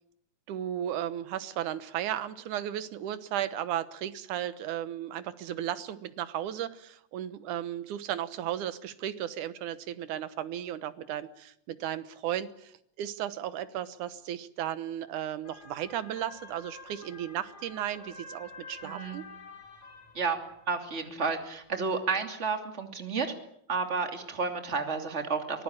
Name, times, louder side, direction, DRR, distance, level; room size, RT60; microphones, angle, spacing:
voice 1, 0.5-19.2, right 11 dB, 85° right, 13 dB, 2.7 m, -35 dB
sound 1, 15.4-21.9, left 3 dB, 50° left, 4.2 m, -49 dB
voice 2, 18.8-19.2 20.1-20.4 20.7-23.3 23.7-25.6, right 4 dB, 25° right, 6 dB, 2.8 m, -31 dB
24.0 x 19.0 x 8.8 m, 0.70 s
omnidirectional pair, 3.4 m